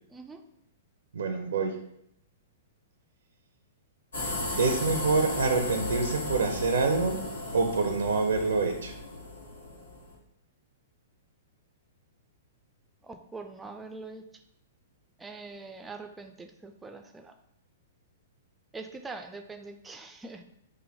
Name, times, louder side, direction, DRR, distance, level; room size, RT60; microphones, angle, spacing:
voice 1, 1.1-1.8 4.6-7.2 7.5-8.9, right 4 dB, 70° right, 5 dB, 0.5 m, -26 dB
sound 1, 4.1-10.1, left 2 dB, 80° left, 1.2 m, -35 dB
voice 2, 13.0-14.2 15.2-17.3 18.7-20.4, right 3 dB, 10° right, 6 dB, 0.4 m, -43 dB
5.1 x 2.1 x 4.1 m, 0.76 s
figure-of-eight pair, 110°, 0 cm